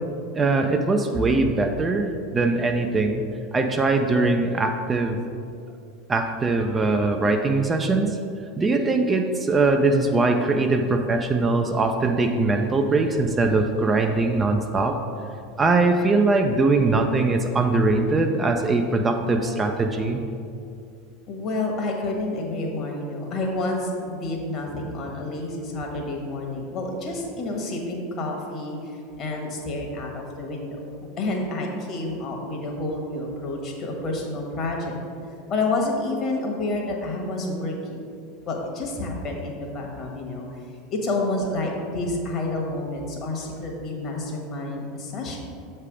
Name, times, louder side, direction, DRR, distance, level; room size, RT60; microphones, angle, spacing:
voice 1, 0.3-3.2 3.5-5.2 6.1-8.2 8.6-15.0 15.6-20.2, right 3 dB, 20° right, 4 dB, 0.4 m, -21 dB
voice 2, 21.3-30.8 31.2-35.0 35.5-38.0 38.5-40.6 40.9-45.4, left 2 dB, 40° left, 0 dB, 1.4 m, -29 dB
7.4 x 3.3 x 4.9 m, 2.5 s
figure-of-eight pair, 85°, 0 cm